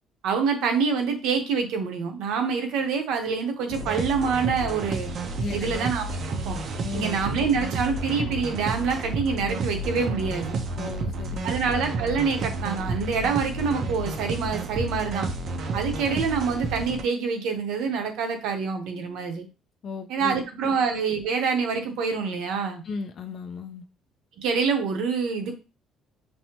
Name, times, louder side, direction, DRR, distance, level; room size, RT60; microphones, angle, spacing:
voice 1, 0.2-5.1 5.5-6.2 6.5-6.6 6.9-10.6 11.4-15.3 15.7-19.5 20.1-22.8 24.4-25.6, right 5 dB, 75° right, 5 dB, 0.8 m, -26 dB
sound 1, 3.7-17.0, right 2 dB, 45° right, 0.5 m, -31 dB
voice 2, 5.4-5.8 6.8-7.1 10.8-11.5 19.8-20.7 22.8-23.9, left 4 dB, 45° left, 6 dB, 0.4 m, -35 dB
5.4 x 2.1 x 2.9 m, 0.31 s
cardioid pair, 155°, 0 cm